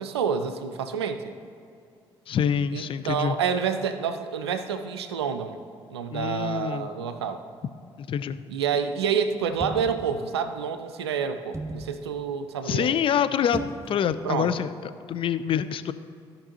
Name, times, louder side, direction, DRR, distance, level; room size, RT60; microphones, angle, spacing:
voice 1, 0.0-1.3 2.7-5.6 5.9-7.4 8.5-13.0 14.2-14.5, right 7 dB, 80° right, 9 dB, 0.5 m, -28 dB
voice 2, 2.3-3.4 6.1-6.9 8.0-8.4 12.7-14.7 15.1-15.9, left 8 dB, 40° left, 13 dB, 0.5 m, -26 dB
sound 1, 9.5-10.2 11.5-11.9 13.5-14.1 14.4-14.5, right 2 dB, 20° right, 0.8 m, -34 dB
15.5 x 5.3 x 2.8 m, 2.5 s
figure-of-eight pair, 45°, 13 cm